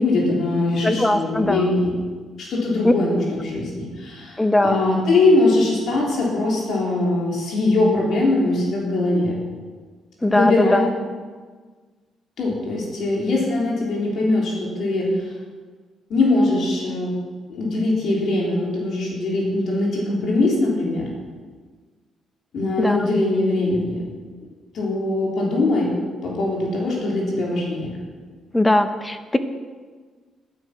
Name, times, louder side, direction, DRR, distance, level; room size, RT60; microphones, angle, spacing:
voice 1, 0.0-2.0 2.4-9.4 10.3-10.9 12.4-15.3 16.1-17.1 17.5-21.1 22.5-24.0 24.7-25.9 26.2-28.0, left 2 dB, 65° left, -3 dB, 3.6 m, -21 dB
voice 2, 0.8-1.7 2.8-2.9 4.4-4.8 10.2-10.9 22.8-23.1 28.5-29.4, left 1 dB, 10° left, 10 dB, 1.0 m, -19 dB
11.5 x 11.0 x 6.1 m, 1.5 s
cardioid pair, 90°, 0 cm